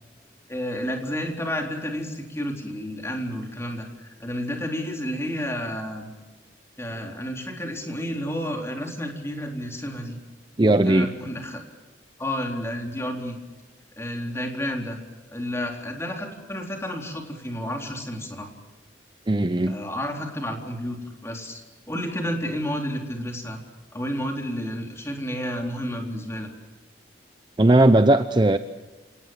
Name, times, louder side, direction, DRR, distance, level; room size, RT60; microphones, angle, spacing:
voice 1, 0.5-6.1 6.8-10.2 10.8-11.6 12.2-13.4 14.0-15.0 15.3-18.5 19.7-21.6 21.9-23.6 23.9-26.5, equal, 15° left, 2 dB, 3.8 m, -31 dB
voice 2, 10.6-11.1 19.3-19.8 27.6-28.6, right 1 dB, 25° right, 10 dB, 0.7 m, -18 dB
28.0 x 18.0 x 7.4 m, 1.2 s
head